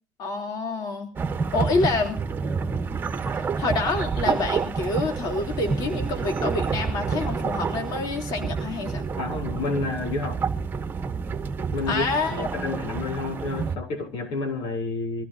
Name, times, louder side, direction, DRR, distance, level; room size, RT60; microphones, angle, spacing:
voice 1, 0.2-1.1 1.5-2.2 3.3-9.1 11.9-12.5, left 3 dB, 55° left, 3.3 m, -27 dB
sound 1, 1.2-13.8, right 5 dB, 25° right, 1.5 m, -29 dB
voice 2, 9.2-10.4 11.7-15.2, left 3 dB, 75° left, 3.6 m, -30 dB
24.0 x 15.5 x 2.7 m
cardioid pair, 130°, 8 cm